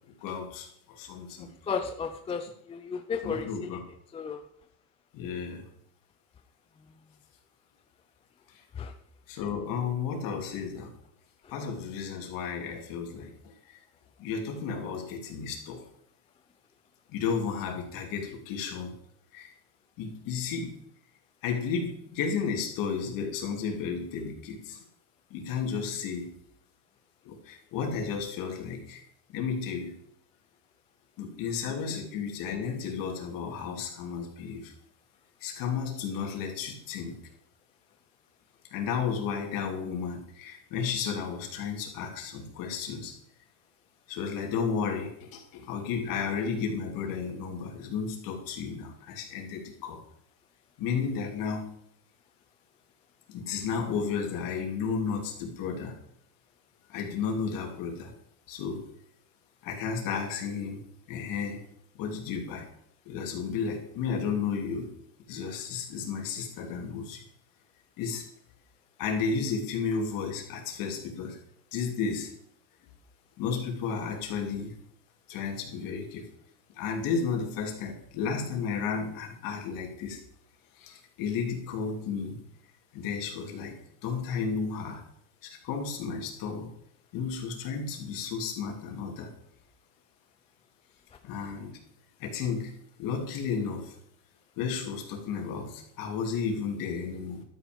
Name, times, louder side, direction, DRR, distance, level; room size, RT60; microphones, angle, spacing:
voice 1, 0.1-1.5 3.2-3.8 5.1-5.7 8.5-8.6 9.3-10.9 11.5-13.8 14.2-15.8 17.1-18.9 19.3-19.5 20.0-20.7 21.4-24.8 25.3-26.4 27.2-29.0 29.3-30.0 31.2-34.7 35.4-37.2 38.7-43.1 44.1-50.0 50.8-51.7 53.3-56.0 56.9-58.1 58.5-58.9 59.6-60.8 61.1-61.6 61.9-62.7 63.0-64.9 65.3-67.2 68.0-68.3 69.0-71.4 71.7-72.3 73.4-74.8 75.3-76.3 76.7-80.2 80.7-82.4 82.9-83.8 84.0-85.0 85.4-86.7 87.1-89.3 91.2-91.7 92.2-92.7 93.0-94.0 94.6-97.4, left 6 dB, 50° left, 2 dB, 3.0 m, -33 dB
voice 2, 1.7-3.7 4.1-4.4 8.8-8.9, left 5 dB, 15° left, 7 dB, 0.5 m, -33 dB
12.0 x 9.2 x 5.2 m, 0.70 s
cardioid pair, 150°, 43 cm